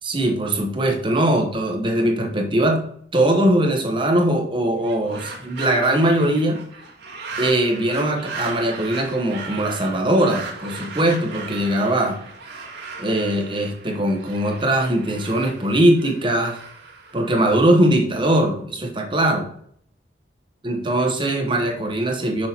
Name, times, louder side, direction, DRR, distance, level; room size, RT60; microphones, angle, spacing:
voice 1, 0.0-6.7 7.4-12.2 13.0-16.6 17.1-19.5 20.6-22.5, right 1 dB, 25° right, 3 dB, 1.1 m, -21 dB
sound 1, 4.8-17.9, right 4 dB, 75° right, 2.0 m, -37 dB
7.0 x 6.3 x 2.9 m, 0.64 s
head